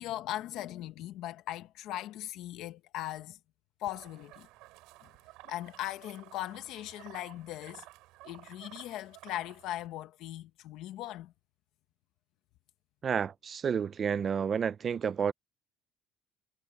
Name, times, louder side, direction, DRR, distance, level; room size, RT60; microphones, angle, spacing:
voice 1, 0.0-3.4 3.8-4.5 5.4-7.8 8.2-11.3, left 14 dB, 60° left, 1.0 m, -39 dB
sound 1, 3.9-9.9, right 20 dB, 75° right, 5.3 m, -54 dB
voice 2, 13.0-15.3, right 7 dB, 25° right, 0.4 m, -30 dB
cardioid pair, 170°, 0 cm